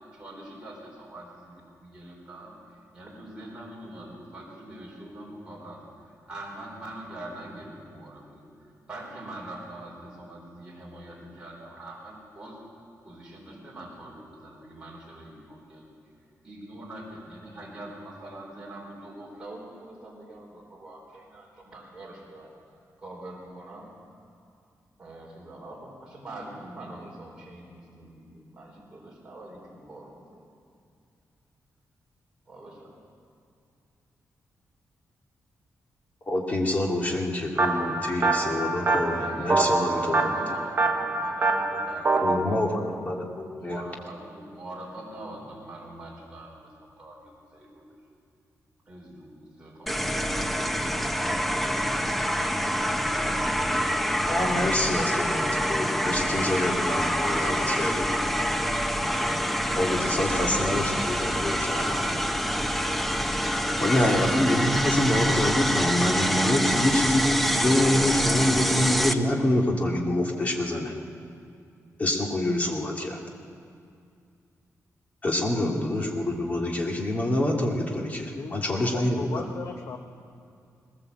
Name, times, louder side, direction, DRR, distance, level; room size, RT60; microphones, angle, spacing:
voice 1, 0.0-12.6 13.0-15.8 16.4-22.5 23.0-23.9 25.0-30.4 32.5-32.9 39.0-43.0 43.6-46.7 47.0-47.8 48.9-49.3 49.6-50.6, right 1 dB, 15° right, -4 dB, 4.5 m, -44 dB
voice 2, 36.3-40.3 42.2-43.8 54.3-58.1 59.8-62.2 63.8-70.9 72.0-73.2 75.2-79.5, left 1 dB, 25° left, 0 dB, 2.5 m, -26 dB
sound 1, 37.6-42.4, right 3 dB, 35° right, 1.3 m, -25 dB
sound 2, 49.9-69.1, equal, ahead, 0.8 m, -26 dB
voice 3, 78.4-80.0, left 5 dB, 60° left, 4 dB, 1.0 m, -37 dB
20.5 x 19.5 x 7.9 m, 2.4 s
wide cardioid pair, 160°, 6 cm